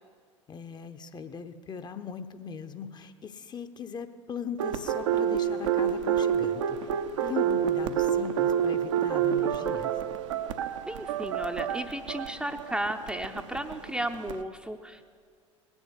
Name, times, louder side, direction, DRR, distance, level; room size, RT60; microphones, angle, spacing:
voice 1, 0.5-9.9, left 6 dB, 25° left, 9 dB, 0.9 m, -39 dB
sound 1, 4.6-14.4, right 9 dB, 65° right, 0.8 m, -28 dB
voice 2, 10.9-15.0, right 1 dB, 5° right, 5 dB, 0.7 m, -34 dB
19.0 x 7.1 x 8.3 m, 2.1 s
figure-of-eight pair, 75°, 17 cm